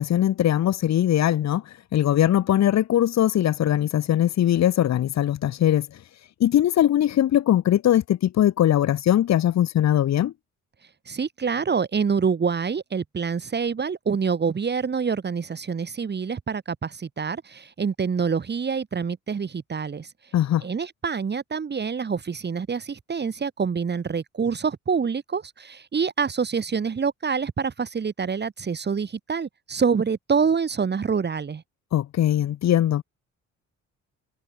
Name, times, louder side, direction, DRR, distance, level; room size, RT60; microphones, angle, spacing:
voice 1, 0.0-6.0 6.4-10.3 20.3-20.6 31.9-33.0, left 11 dB, 60° left, 1.3 m, -21 dB
voice 2, 11.1-20.1 20.6-31.6, right 6 dB, 35° right, 1.7 m, -26 dB
cardioid pair, 90°, 30 cm